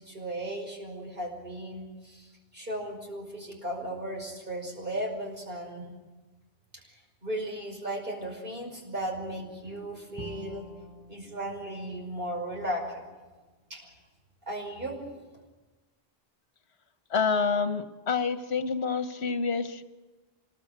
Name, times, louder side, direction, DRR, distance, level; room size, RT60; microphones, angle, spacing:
voice 1, 0.0-5.9 7.2-10.7 11.1-13.0 13.7-13.9 14.5-15.0, right 1 dB, 55° right, 1 dB, 5.7 m, -36 dB
Bowed string instrument, 10.2-13.3, left 1 dB, 25° right, 4.8 m, -48 dB
voice 2, 17.1-19.8, left 5 dB, 75° left, 9 dB, 1.3 m, -28 dB
25.5 x 20.5 x 8.0 m, 1.2 s
omnidirectional pair, 1.1 m